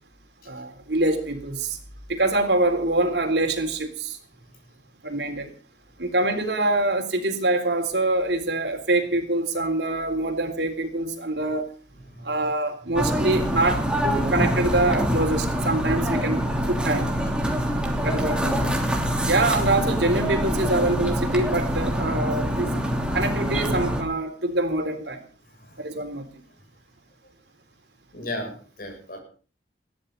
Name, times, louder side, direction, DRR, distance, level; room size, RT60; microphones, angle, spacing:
voice 1, 0.5-1.8 2.1-4.2 5.0-5.5 6.0-11.7 12.2-16.4 16.7-17.2 18.0-18.8 19.3-22.8 23.1-25.2 25.8-26.3, right 2 dB, 70° right, 5 dB, 3.8 m, -25 dB
sound 1, 12.9-24.0, equal, 5° right, 3.1 m, -25 dB
voice 2, 28.1-29.2, left 1 dB, 55° left, 3 dB, 7.4 m, -35 dB
21.0 x 14.5 x 4.1 m, 0.39 s
head